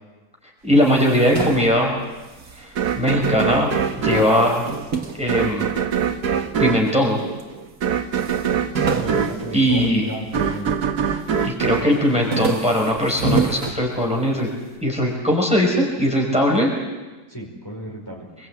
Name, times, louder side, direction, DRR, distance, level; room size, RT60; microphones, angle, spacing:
voice 1, 0.6-1.9 2.6-2.7 3.0-3.7 4.0-4.6 5.1-5.7 6.6-7.2 9.5-10.1 11.4-14.5 14.8-16.7, equal, 5° right, -1 dB, 4.8 m, -19 dB
sound 1, 0.7-3.4 3.7-6.2 6.8-7.5 7.8-7.9 8.1-10.7 11.1-11.6 11.9-14.5, right 4 dB, 65° right, 2.3 m, -28 dB
sound 2, 2.8-13.0, right 7 dB, 80° right, 1.8 m, -24 dB
voice 2, 8.8-10.7 17.3-18.3, right 1 dB, 15° left, -2 dB, 5.0 m, -34 dB
26.0 x 21.5 x 8.7 m, 1.2 s
omnidirectional pair, 1.7 m